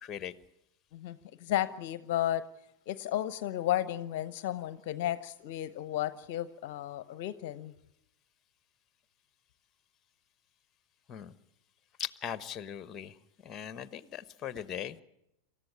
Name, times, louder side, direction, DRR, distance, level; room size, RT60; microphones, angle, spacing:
voice 1, 0.0-0.3 11.1-11.3 12.0-13.2 13.4-15.0, left 9 dB, 25° left, 16 dB, 1.1 m, -39 dB
voice 2, 0.9-2.4 2.9-7.7, left 12 dB, 50° left, 16 dB, 0.9 m, -33 dB
27.5 x 14.5 x 8.7 m, 0.84 s
figure-of-eight pair, 90°, 0 cm